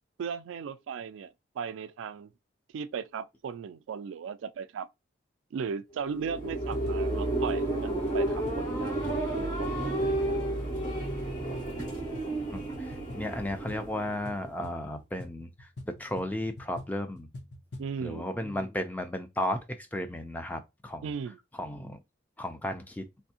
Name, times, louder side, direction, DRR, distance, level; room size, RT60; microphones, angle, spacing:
voice 1, 0.2-2.3 2.7-4.9 5.5-10.4 17.8-18.3 21.0-21.4, right 6 dB, 85° right, 0.3 m, -37 dB
sound 1, 6.0-14.6, right 1 dB, 40° left, 1.8 m, -31 dB
sound 2, 6.3-18.0, left 1 dB, 60° left, 0.8 m, -48 dB
voice 2, 12.5-17.3 18.0-21.1 21.5-22.0 22.4-23.1, left 1 dB, 10° left, 0.3 m, -34 dB
3.4 x 2.6 x 2.8 m
head